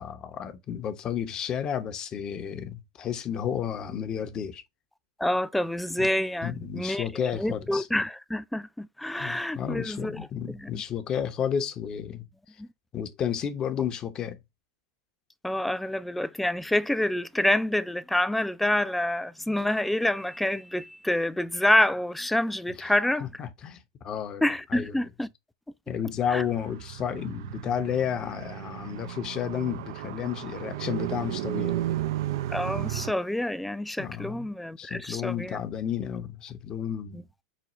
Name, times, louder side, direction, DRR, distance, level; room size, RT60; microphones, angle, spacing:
voice 1, 0.0-4.6 6.0-6.1 6.4-7.9 9.2-12.3 12.9-14.4 22.8-22.9 23.2-24.4 24.7-24.9 25.9-31.8 34.0-34.5 34.8-37.3, left 8 dB, 35° left, 0.8 m, -32 dB
voice 2, 5.2-10.3 10.5-10.7 12.6-12.7 15.4-23.4 24.4-25.3 26.3-26.4 32.5-35.6 37.1-37.2, left 1 dB, 5° left, 0.4 m, -27 dB
Car, 26.2-33.1, right 13 dB, 65° right, 0.4 m, -34 dB
5.1 x 2.2 x 3.0 m
hypercardioid pair, 95°, 2 cm